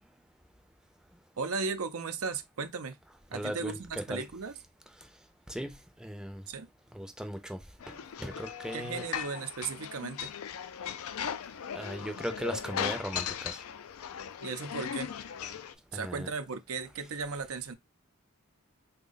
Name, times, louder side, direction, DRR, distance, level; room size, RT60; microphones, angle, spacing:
voice 1, 1.4-3.0 3.3-4.6 6.5-6.7 8.7-10.3 14.4-15.1 15.9-17.7, right 4 dB, 80° right, 0.6 m, -36 dB
voice 2, 3.3-4.3 5.5-6.4 6.9-7.6 7.9-9.0 11.7-13.6 15.9-16.3, equal, 5° right, 0.5 m, -38 dB
sound 1, 7.8-15.7, left 8 dB, 80° left, 0.4 m, -38 dB
3.6 x 2.2 x 3.9 m
head